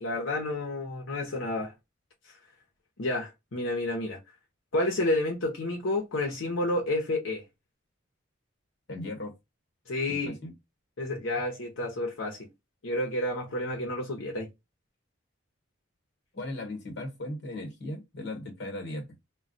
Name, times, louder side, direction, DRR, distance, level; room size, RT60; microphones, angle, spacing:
voice 1, 0.0-1.7 3.0-4.2 4.7-7.4 9.9-10.4 11.0-12.5 12.8-14.5, left 1 dB, 85° left, 0.8 m, -30 dB
voice 2, 8.9-9.3 10.1-10.5 16.3-19.1, left 1 dB, 60° left, 1.2 m, -37 dB
2.2 x 2.2 x 3.8 m
head